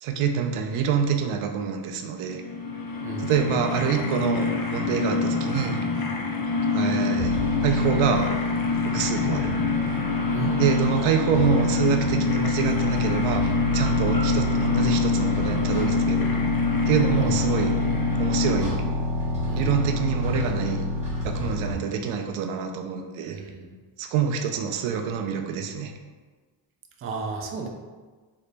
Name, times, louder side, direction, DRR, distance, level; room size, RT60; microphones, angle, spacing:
voice 1, 0.0-2.4 3.2-5.8 6.7-8.3 8.8-9.6 10.5-16.3 16.9-17.7 18.2-18.8 19.5-20.9 21.2-23.4 24.0-25.9, right 7 dB, 75° right, 5 dB, 0.5 m, -26 dB
sound 1, 2.2-18.9, left 4 dB, 45° left, 0.6 m, -26 dB
sound 2, 7.2-21.7, left 1 dB, 15° right, 1.2 m, -28 dB
voice 2, 10.3-10.8 19.4-19.7 23.3-23.7 27.0-27.7, right 4 dB, 30° right, 2 dB, 0.4 m, -33 dB
3.8 x 2.1 x 3.3 m, 1.4 s
cardioid pair, 95°, 49 cm